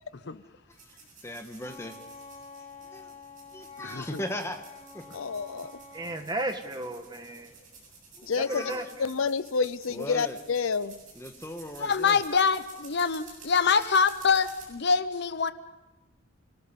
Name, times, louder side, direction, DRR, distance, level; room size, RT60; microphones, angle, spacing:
sound 1, 0.7-14.6, right 4 dB, 40° right, 7.9 m, -52 dB
voice 1, 1.2-2.0 2.8-3.1 3.5-4.6 4.9-5.1 8.2-8.9 9.9-10.4 11.1-12.2 13.5-14.0, left 1 dB, 15° left, 1.5 m, -38 dB
Wind instrument woodwind instrument, 1.6-6.2, left 4 dB, 35° left, 2.8 m, -48 dB
voice 2, 5.1-5.7 8.2-8.6 9.0-11.0, left 5 dB, 85° left, 0.6 m, -29 dB
voice 3, 5.9-7.5 8.4-8.8, right 1 dB, 20° right, 1.6 m, -34 dB
voice 4, 11.8-15.5, left 5 dB, 55° left, 0.8 m, -25 dB
29.0 x 18.5 x 5.4 m
head